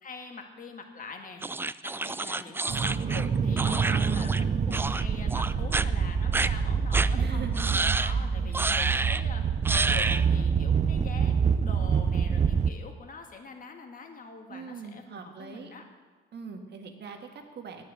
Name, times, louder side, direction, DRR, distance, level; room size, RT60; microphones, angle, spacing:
voice 1, 0.0-1.4 1.8-7.5 7.9-9.4 9.7-15.8, left 4 dB, 45° left, 4 dB, 2.0 m, -44 dB
sound 1, 1.4-4.4 4.7-5.0 5.3-5.9 6.3-6.5 6.9-7.1 7.6-8.1 8.5-9.2 9.7-10.2, right 3 dB, 10° right, 0.3 m, -29 dB
sound 2, 2.7-12.7, right 6 dB, 35° right, 0.7 m, -26 dB
voice 2, 7.1-7.7 8.1-8.3 14.5-15.7 16.3-17.8, right 5 dB, 60° right, 4 dB, 1.8 m, -41 dB
9.8 x 9.2 x 8.4 m, 1.3 s
cardioid pair, 90°, 20 cm